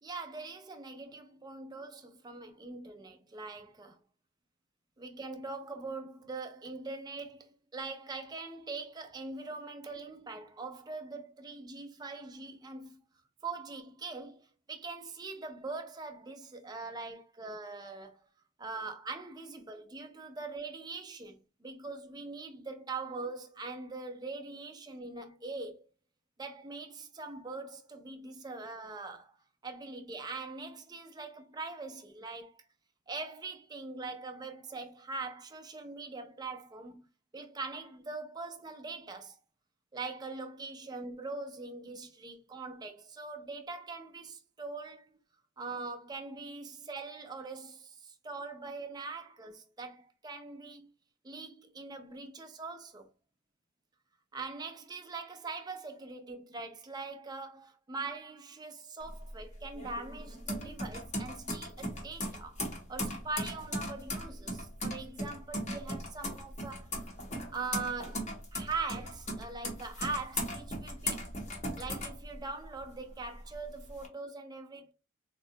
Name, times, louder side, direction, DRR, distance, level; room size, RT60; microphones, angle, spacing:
voice 1, 0.0-4.0 5.0-13.0 13.4-18.2 18.6-25.8 26.4-29.4 29.6-32.6 33.1-37.1 37.3-39.4 39.9-45.2 45.6-50.9 51.2-53.1 54.3-62.6 62.9-66.9 67.5-71.3 71.8-74.9, right 3 dB, 20° right, 0.4 m, -42 dB
sound 1, 59.0-72.8 73.2-74.1, left 1 dB, 35° left, 0.8 m, -38 dB
3.6 x 2.1 x 2.7 m
head